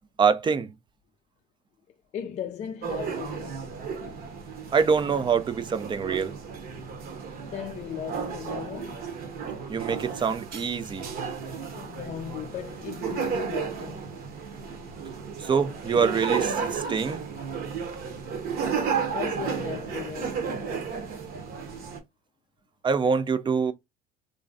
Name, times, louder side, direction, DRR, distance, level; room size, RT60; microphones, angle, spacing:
voice 1, 0.2-0.7 4.7-6.3 9.7-11.1 15.4-17.2 22.8-23.7, right 6 dB, 25° right, 0.4 m, -25 dB
voice 2, 2.1-3.6 7.4-9.1 11.7-14.0 19.1-20.8, left 9 dB, 40° left, 0.4 m, -37 dB
sound 1, 2.8-22.0, right 6 dB, 50° right, 0.9 m, -33 dB
3.0 x 2.5 x 2.5 m
cardioid pair, 105°, 19 cm